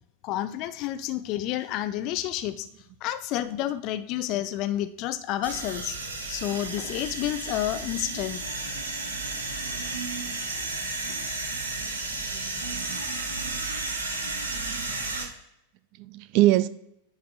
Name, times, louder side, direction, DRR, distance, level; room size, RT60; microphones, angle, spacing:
voice 1, 0.2-2.7 3.0-6.0 6.3-8.6, left 13 dB, 40° left, 0.5 m, -30 dB
sound 1, 5.4-15.2, right 3 dB, 75° right, 1.5 m, -33 dB
voice 2, 12.3-13.0 13.3-13.6 14.5-15.2 16.0-16.7, right 16 dB, 45° right, 0.4 m, -26 dB
10.0 x 4.0 x 4.1 m
figure-of-eight pair, 90°, 0 cm